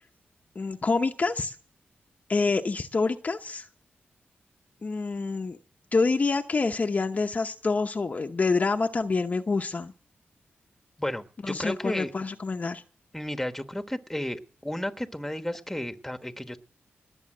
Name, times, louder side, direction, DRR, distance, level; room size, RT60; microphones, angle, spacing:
voice 1, 0.6-1.5 2.3-3.7 4.8-5.6 5.9-9.9 11.4-12.8, left 4 dB, 40° left, 5 dB, 0.8 m, -27 dB
voice 2, 11.0-12.1 13.1-16.6, left 1 dB, 5° left, 8 dB, 1.3 m, -33 dB
19.5 x 7.1 x 7.6 m, 0.43 s
wide cardioid pair, 90°, 4 cm